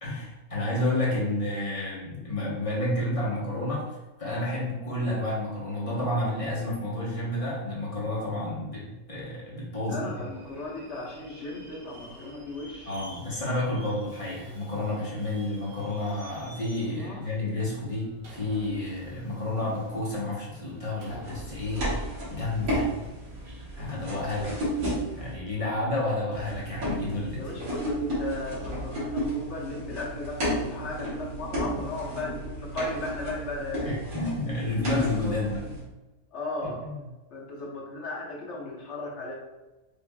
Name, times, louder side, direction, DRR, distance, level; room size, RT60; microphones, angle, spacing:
voice 1, 0.0-3.9 4.2-10.1 12.9-21.9 22.3-22.9 23.7-24.5 24.9-27.4 33.8-35.6 36.8-37.0, left 1 dB, 30° left, -6 dB, 1.0 m, -30 dB
voice 2, 9.8-12.9 16.8-17.3 27.3-34.0 34.4-35.7 36.3-36.8 37.3-39.3, left 2 dB, 60° left, -2 dB, 1.0 m, -36 dB
Subway metro underground, 10.0-28.5, right 1 dB, 60° right, 1.3 m, -51 dB
sound 1, 21.2-25.3 26.3-35.8, right 1 dB, 90° right, 1.9 m, -33 dB
5.3 x 2.5 x 2.2 m, 1.1 s
omnidirectional pair, 1.5 m